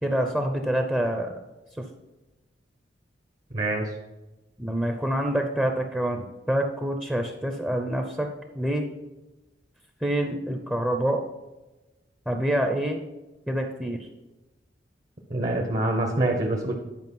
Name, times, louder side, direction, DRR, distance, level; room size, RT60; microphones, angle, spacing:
voice 1, 0.0-1.4 1.8-1.9 4.6-8.3 8.5-8.9 10.0-11.2 12.3-13.0 13.5-14.1, right 1 dB, 5° right, 3 dB, 0.8 m, -26 dB
voice 2, 3.5-3.9 15.3-16.7, right 2 dB, 45° right, 1 dB, 1.2 m, -25 dB
11.0 x 5.0 x 5.5 m, 1.1 s
head